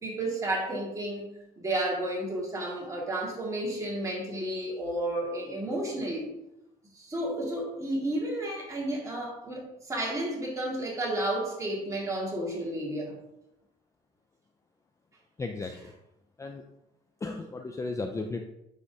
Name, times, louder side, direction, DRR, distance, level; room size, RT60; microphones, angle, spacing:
voice 1, 0.0-1.3 1.6-6.3 6.9-13.1, right 1 dB, 20° right, -3 dB, 1.9 m, -32 dB
voice 2, 15.4-15.9 16.4-16.6 17.2-18.5, left 3 dB, 20° left, 4 dB, 0.4 m, -35 dB
9.8 x 3.6 x 2.7 m, 0.88 s
cardioid pair, 110°, 17 cm